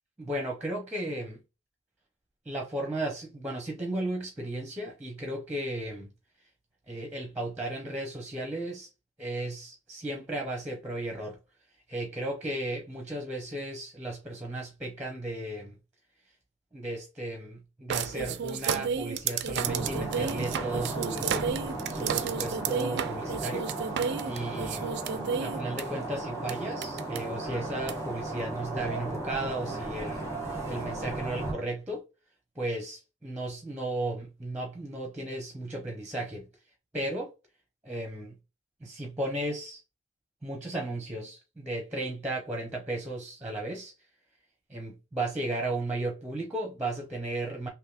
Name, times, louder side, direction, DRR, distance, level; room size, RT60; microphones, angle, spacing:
voice 1, 0.2-1.4 2.5-6.1 6.9-8.9 9.2-11.4 11.9-15.8 16.7-21.5 21.9-23.7 24.2-24.9 25.4-32.1 32.6-36.5 36.9-37.3 37.8-38.3 38.8-39.8 40.4-43.9 44.7-47.7, right 1 dB, 5° right, 0.6 m, -35 dB
sound 1, 17.9-25.8 26.5-26.6 26.8-27.2 27.9-28.0, right 7 dB, 50° right, 0.3 m, -32 dB
sound 2, 19.6-31.5, right 2 dB, 15° left, 1.1 m, -35 dB
3.4 x 2.9 x 2.4 m
head